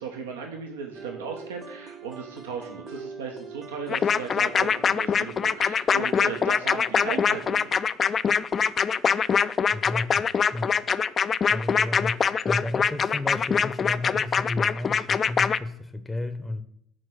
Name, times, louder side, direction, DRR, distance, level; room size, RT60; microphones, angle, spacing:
voice 1, 0.0-7.7, right 5 dB, 80° right, 2 dB, 0.8 m, -36 dB
sound 1, 0.9-6.8, right 4 dB, 35° right, 0.9 m, -44 dB
sound 2, 3.9-15.6, left 6 dB, 35° left, 0.3 m, -23 dB
voice 2, 9.7-10.7 11.4-16.6, left 2 dB, 10° left, 9 dB, 0.7 m, -33 dB
6.3 x 4.4 x 6.2 m, 0.70 s
hypercardioid pair, 65°, 0 cm